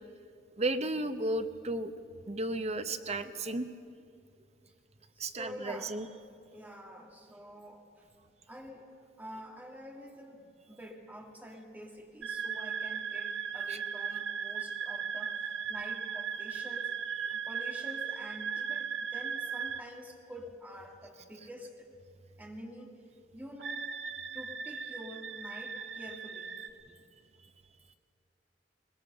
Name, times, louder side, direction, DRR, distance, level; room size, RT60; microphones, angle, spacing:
voice 1, 0.6-1.9 2.3-3.7 5.2-6.1 13.7-13.8, right 2 dB, 35° right, 10 dB, 0.8 m, -33 dB
voice 2, 5.1-6.0 6.5-8.1 8.5-17.0 17.3-21.9 22.4-23.0 23.3-23.9 24.3-26.6 26.8-26.9, equal, 10° right, 1 dB, 1.9 m, -47 dB
sound 1, 12.2-19.8 23.6-26.7, right 6 dB, 85° right, 0.8 m, -37 dB
21.0 x 19.5 x 6.7 m, 2.4 s
head